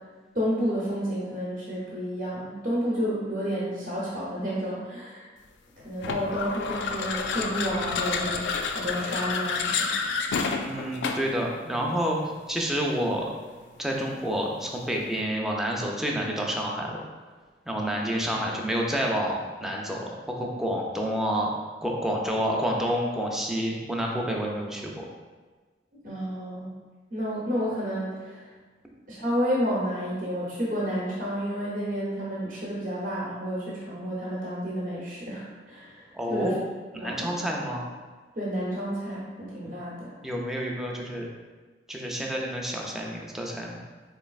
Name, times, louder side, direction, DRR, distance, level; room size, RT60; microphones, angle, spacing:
voice 1, 0.3-5.2 5.8-10.0 26.0-26.7 27.1-28.5 29.1-36.6 37.0-37.3 38.4-40.1, equal, 50° right, -7 dB, 0.7 m, -30 dB
sound 1, 6.0-11.4, left 5 dB, 80° left, 0.3 m, -29 dB
voice 2, 10.6-12.2 12.5-13.3 13.8-17.1 17.7-21.5 21.8-25.1 36.1-36.6 36.9-37.9 40.2-41.3 41.9-43.8, equal, ahead, -2 dB, 0.3 m, -29 dB
3.9 x 3.1 x 2.3 m, 1.4 s
head